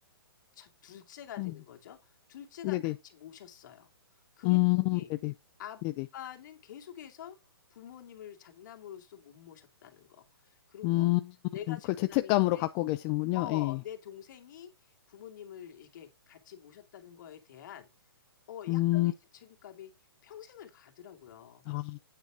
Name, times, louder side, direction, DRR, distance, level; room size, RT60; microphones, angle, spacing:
voice 1, 0.5-3.9 4.4-5.1 5.6-5.8 6.1-11.1 11.5-12.7 13.3-17.9 18.5-19.9 20.2-21.7, left 10 dB, 50° left, 2.5 m, -47 dB
voice 2, 4.4-5.3 10.8-11.2 11.7-11.8 12.1-13.8 18.7-19.1 21.7-22.0, left 20 dB, 25° left, 0.5 m, -27 dB
9.2 x 8.1 x 3.8 m
hypercardioid pair, 145°, 13 cm